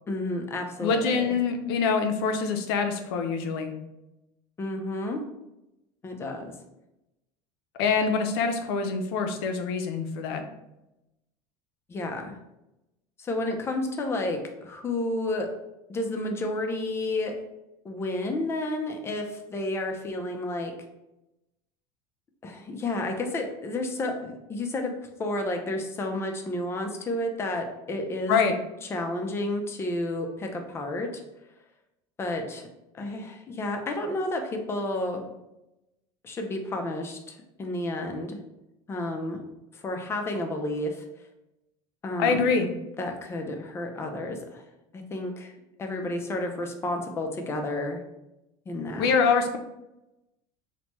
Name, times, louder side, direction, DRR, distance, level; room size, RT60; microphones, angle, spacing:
voice 1, 0.1-1.4 4.6-5.2 6.0-6.5 11.9-12.4 13.2-15.5 15.9-17.3 17.8-20.7 22.4-24.9 25.2-28.4 28.8-31.1 32.2-32.7 32.9-35.2 36.2-38.4 38.9-39.4 39.7-41.0 42.0-42.5 43.0-44.6 44.9-45.5 45.8-48.0 48.7-49.1, left 1 dB, 20° left, 3 dB, 0.4 m, -31 dB
voice 2, 0.8-3.7 7.8-10.4 28.3-28.5 42.2-42.7 49.0-49.6, left 5 dB, 90° left, 7 dB, 0.4 m, -25 dB
3.1 x 2.1 x 2.9 m, 0.92 s
supercardioid pair, 135°, 13 cm